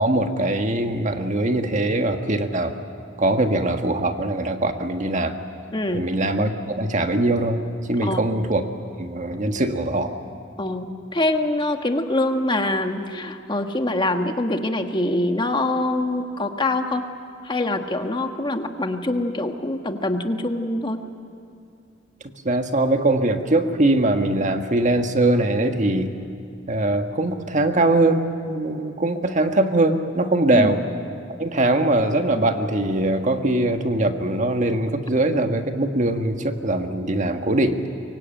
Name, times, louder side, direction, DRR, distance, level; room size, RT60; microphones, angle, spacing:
voice 1, 0.0-2.7 3.2-5.4 5.9-7.6 7.9-8.7 9.0-10.2 22.4-26.1 26.7-30.8 31.4-37.8, right 2 dB, 40° right, 6 dB, 1.5 m, -21 dB
voice 2, 5.7-6.0 8.0-8.2 10.6-10.9 11.1-17.0 17.4-21.0 30.5-30.7, left 2 dB, 25° left, 6 dB, 1.5 m, -24 dB
24.0 x 23.5 x 9.0 m, 2.6 s
head